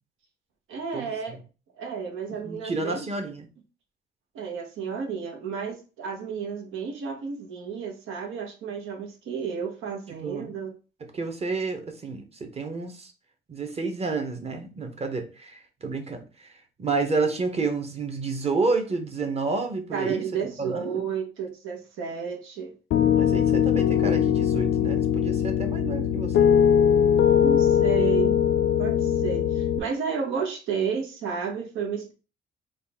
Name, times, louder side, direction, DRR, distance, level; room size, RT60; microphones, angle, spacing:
voice 1, 0.7-1.4 1.8-3.1 4.3-10.7 19.9-22.7 27.4-28.4 28.8-32.1, right 6 dB, 85° right, 3 dB, 1.0 m, -32 dB
voice 2, 2.4-3.5 10.2-10.5 11.1-13.1 13.5-16.5 16.8-20.2 20.6-21.1 23.1-26.4, right 3 dB, 30° right, 5 dB, 0.9 m, -30 dB
Piano, 22.9-29.8, left 9 dB, 70° left, 0.4 m, -21 dB
4.0 x 2.4 x 3.5 m, 0.33 s
cardioid pair, 90°, 20 cm